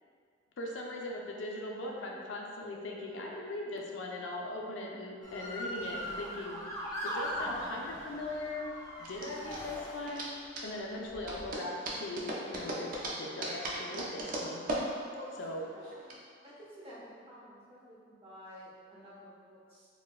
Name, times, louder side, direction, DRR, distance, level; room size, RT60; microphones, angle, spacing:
voice 1, 0.6-6.6 7.0-8.7 9.0-10.3 10.6-14.6 15.4-15.6, left 2 dB, 85° left, 0 dB, 0.4 m, -40 dB
Motor vehicle (road) / Siren, 5.2-10.5 11.1-11.5, equal, 20° left, 0.4 m, -40 dB
sound 1, 7.4-16.1, right 1 dB, 50° right, 0.4 m, -39 dB
voice 2, 15.7-19.9, equal, 30° right, -8 dB, 0.8 m, -51 dB
4.1 x 2.2 x 2.3 m, 2.2 s
head